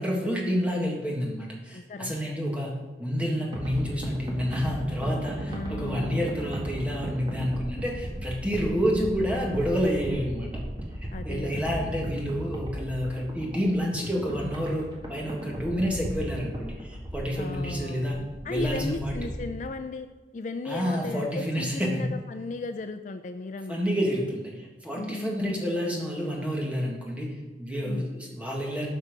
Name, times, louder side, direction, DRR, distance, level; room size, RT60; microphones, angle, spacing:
voice 1, 0.0-10.5 11.2-18.1 18.5-19.3 20.6-22.1 23.7-28.9, equal, 5° right, -2 dB, 1.6 m, -29 dB
voice 2, 1.7-2.1 5.5-6.3 11.1-11.7 17.4-18.1 18.4-20.1 20.3-23.8 24.9-25.6 27.8-28.0, left 3 dB, 45° left, 8 dB, 0.4 m, -36 dB
sound 1, 3.5-19.5, equal, 25° right, 1.5 m, -36 dB
12.0 x 4.4 x 5.2 m, 1.3 s
head